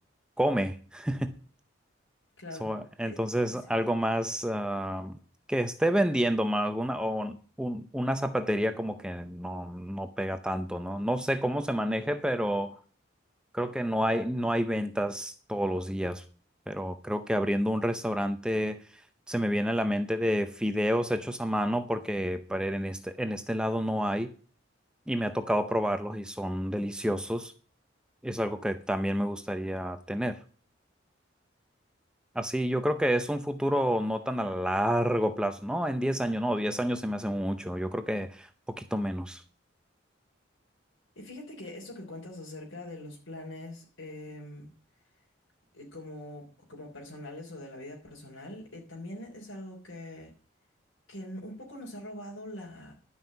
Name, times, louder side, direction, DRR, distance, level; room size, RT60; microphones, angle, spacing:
voice 1, 0.4-1.3 2.6-5.2 5.5-12.8 13.5-16.2 16.7-18.8 19.3-24.3 25.1-27.5 28.2-30.4 32.3-39.4, equal, 5° right, 0.6 m, -29 dB
voice 2, 2.4-2.7 3.0-3.2 41.1-44.7 45.7-50.3 51.1-52.9, left 1 dB, 85° left, 3.5 m, -43 dB
12.0 x 5.6 x 8.8 m
head